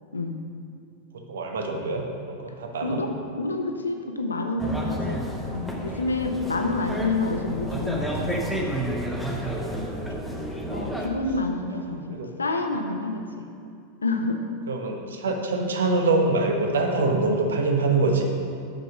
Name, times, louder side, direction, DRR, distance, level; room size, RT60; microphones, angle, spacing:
voice 1, 1.3-2.0 2.3-3.0 4.7-4.9 10.0-10.3 12.1-12.3 14.7-18.2, right 3 dB, 65° right, 2 dB, 1.1 m, -25 dB
voice 2, 2.8-5.2 5.5-8.5 10.7-13.5 14.0-14.4, left 3 dB, 75° left, 5 dB, 0.7 m, -28 dB
sound 1, 4.6-11.1, equal, ahead, 1.0 m, -30 dB
6.6 x 6.2 x 6.0 m, 2.4 s
figure-of-eight pair, 90°, 0 cm